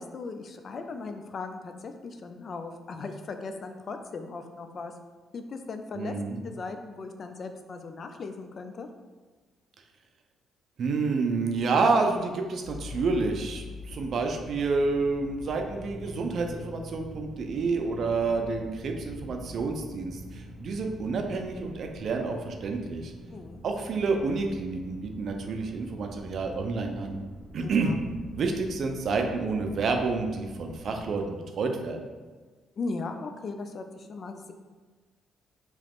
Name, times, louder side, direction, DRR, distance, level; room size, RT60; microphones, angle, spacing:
voice 1, 0.0-4.9 5.3-6.2 6.4-8.9 23.3-23.6 27.6-28.0 32.8-34.5, left 3 dB, 50° left, 7 dB, 0.3 m, -38 dB
voice 2, 5.9-6.4 10.8-23.1 23.6-27.2 27.5-27.9 28.3-32.0, right 4 dB, 60° right, 4 dB, 0.4 m, -29 dB
sound 1, 12.6-31.3, left 1 dB, 10° right, 0.7 m, -44 dB
3.0 x 2.4 x 3.4 m, 1.4 s
cardioid pair, 90°, 0 cm